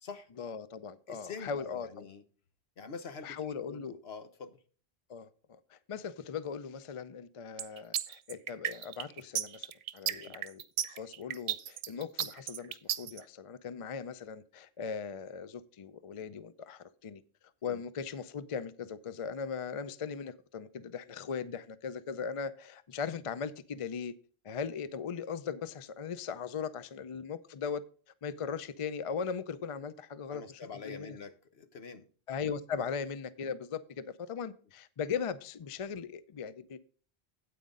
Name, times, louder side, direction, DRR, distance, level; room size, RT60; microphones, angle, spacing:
voice 1, 0.4-2.1 3.2-4.0 5.1-9.7 9.9-10.6 10.9-17.2 17.6-24.1 24.4-27.8 28.2-31.2 32.3-36.8, left 6 dB, 45° left, 0.5 m, -39 dB
voice 2, 1.1-2.2 2.8-4.6 10.1-10.4 17.7-17.8 27.1-27.2 30.3-32.1, left 5 dB, 70° left, 1.3 m, -46 dB
sound 1, 7.6-13.2, right 10 dB, 75° right, 0.9 m, -34 dB
9.2 x 8.5 x 3.8 m
omnidirectional pair, 1.1 m